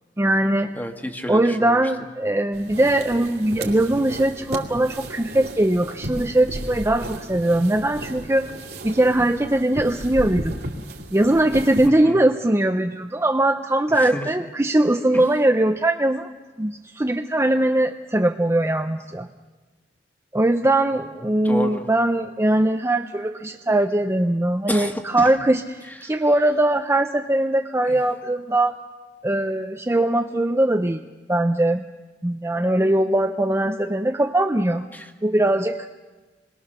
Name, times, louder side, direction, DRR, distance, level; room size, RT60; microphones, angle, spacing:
voice 1, 0.2-0.7 1.3-8.5 8.8-10.5 11.1-16.3 16.6-19.3 20.3-28.8 29.2-31.0 31.3-31.8 32.2-34.9 35.2-35.9, right 1 dB, 15° right, 6 dB, 0.6 m, -21 dB
voice 2, 0.8-1.8 12.0-12.2 14.1-14.2 21.4-21.8 24.7-25.0 34.9-35.0, equal, 10° left, 5 dB, 1.6 m, -29 dB
sound 1, 2.5-11.9, right 1 dB, 60° right, 2.5 m, -34 dB
27.0 x 21.5 x 6.7 m, 1.3 s
head